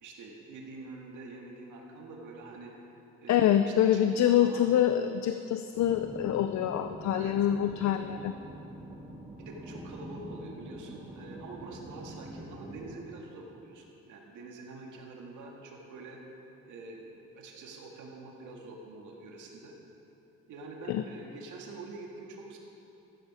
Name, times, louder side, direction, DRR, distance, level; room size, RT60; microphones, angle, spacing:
voice 1, 0.0-4.7 7.1-7.3 7.9-8.0 9.4-16.2 16.7-19.7 20.5-22.6, right 3 dB, 85° right, 0 dB, 1.9 m, -46 dB
voice 2, 3.3-8.3 20.9-21.0, left 10 dB, 65° left, 8 dB, 0.5 m, -26 dB
sound 1, 5.7-13.0, right 1 dB, 5° right, 2.6 m, -45 dB
13.5 x 9.5 x 5.0 m, 2.8 s
cardioid pair, 90°, 30 cm